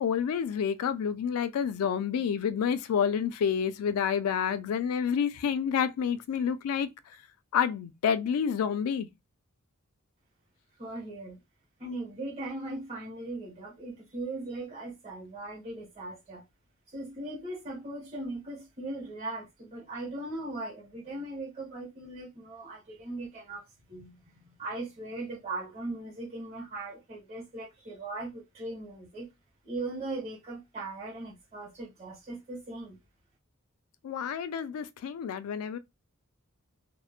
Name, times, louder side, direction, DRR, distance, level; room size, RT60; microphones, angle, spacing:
voice 1, 0.0-6.9 7.5-9.1 34.0-35.8, left 7 dB, 75° left, 0.3 m, -29 dB
voice 2, 10.8-11.4 11.8-16.4 16.9-29.3 29.6-33.0, right 2 dB, 30° right, 1.1 m, -39 dB
2.8 x 2.1 x 2.3 m
head